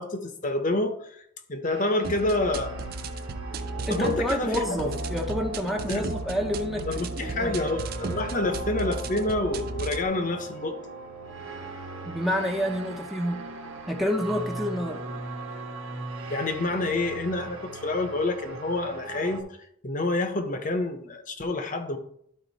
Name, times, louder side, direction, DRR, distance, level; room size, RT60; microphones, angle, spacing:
voice 1, 0.0-2.8 3.9-4.9 5.9-6.1 6.9-10.8 16.3-19.4 19.8-22.0, left 2 dB, 40° left, 7 dB, 0.8 m, -28 dB
sound 1, 1.6-19.4, right 3 dB, 80° right, 1.2 m, -38 dB
sound 2, 2.0-10.0, right 2 dB, 45° right, 0.5 m, -35 dB
voice 2, 3.9-7.5 12.0-13.4 13.9-15.0, equal, ahead, 1 dB, 0.6 m, -28 dB
11.5 x 3.9 x 4.0 m, 0.69 s
head